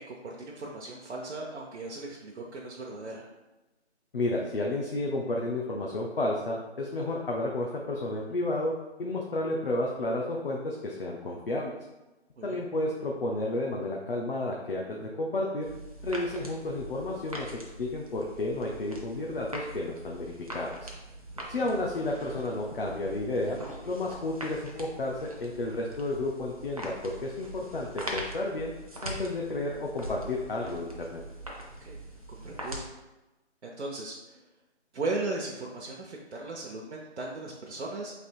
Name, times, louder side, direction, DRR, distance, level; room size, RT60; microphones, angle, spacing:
voice 1, 0.0-3.3 12.4-12.6 21.3-21.6 31.8-32.0 32.3-32.8 33.6-34.4 34.9-38.2, right 2 dB, 70° right, -2 dB, 0.7 m, -37 dB
voice 2, 4.1-8.7 9.0-11.8 12.4-15.7 16.0-17.5 17.8-20.9 21.5-23.6 23.9-28.7 29.0-31.2, left 2 dB, 55° left, -1 dB, 0.6 m, -31 dB
sound 1, 15.6-32.9, right 1 dB, 35° right, 0.5 m, -42 dB
3.3 x 2.8 x 4.3 m, 1.1 s
figure-of-eight pair, 170°, 34 cm